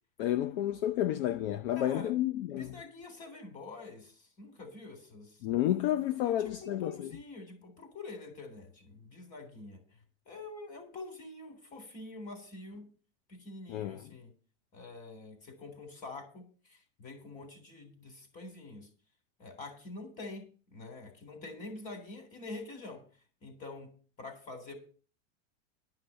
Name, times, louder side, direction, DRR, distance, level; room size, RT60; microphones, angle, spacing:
voice 1, 0.2-2.7 5.4-7.1 13.7-14.0, left 12 dB, 55° left, 0.7 m, -31 dB
voice 2, 1.8-2.2 2.5-5.8 6.2-9.8 10.3-12.9 13.3-14.3 14.7-18.9 19.4-23.0 23.4-23.9 24.2-24.7, left 3 dB, 25° left, 3.5 m, -46 dB
12.0 x 5.9 x 8.8 m
supercardioid pair, 170°, 33 cm